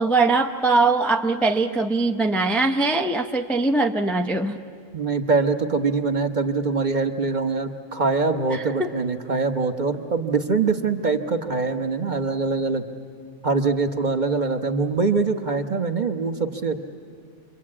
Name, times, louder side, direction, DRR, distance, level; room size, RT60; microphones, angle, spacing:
voice 1, 0.0-4.6 8.5-8.9, right 3 dB, ahead, 5 dB, 0.6 m, -21 dB
voice 2, 4.9-12.8 13.4-16.8, right 4 dB, 40° right, 6 dB, 1.1 m, -23 dB
28.0 x 23.5 x 8.6 m, 2.2 s
omnidirectional pair, 1.4 m